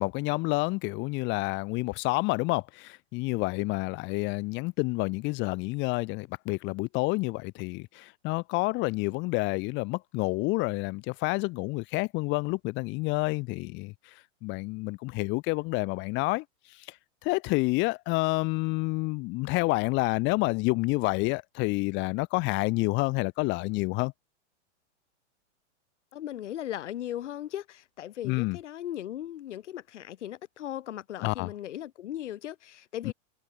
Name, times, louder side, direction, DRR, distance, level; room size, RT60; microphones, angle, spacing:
voice 1, 0.0-17.0 17.2-24.1 28.2-28.6 31.2-31.5 33.0-33.1, left 25 dB, 30° left, 2.2 m, -29 dB
voice 2, 26.1-33.1, left 12 dB, 70° left, 6.4 m, -38 dB
supercardioid pair, 155°, 37 cm